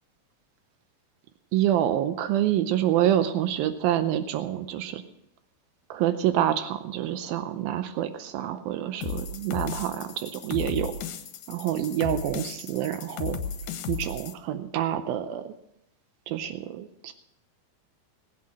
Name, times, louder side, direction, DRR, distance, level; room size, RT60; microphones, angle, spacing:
voice 1, 1.5-5.0 5.9-10.9 11.5-13.4 13.9-15.5 16.3-17.1, right 11 dB, 85° right, 10 dB, 2.5 m, -27 dB
sound 1, 9.0-14.3, left 6 dB, 65° left, 2.1 m, -35 dB
19.5 x 8.7 x 6.3 m, 0.80 s
omnidirectional pair, 4.2 m